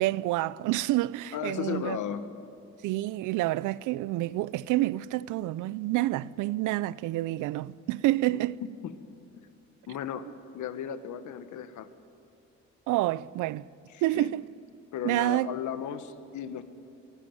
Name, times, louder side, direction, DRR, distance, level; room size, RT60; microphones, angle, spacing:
voice 1, 0.0-2.0 2.8-8.6 12.9-13.7 14.0-14.4 15.0-15.5, right 17 dB, 90° right, 0.5 m, -28 dB
voice 2, 1.3-2.2 8.3-9.0 9.9-11.9 13.9-14.3 14.9-16.6, left 9 dB, 75° left, 1.3 m, -35 dB
23.0 x 13.0 x 9.3 m
cardioid pair, 90°, 30 cm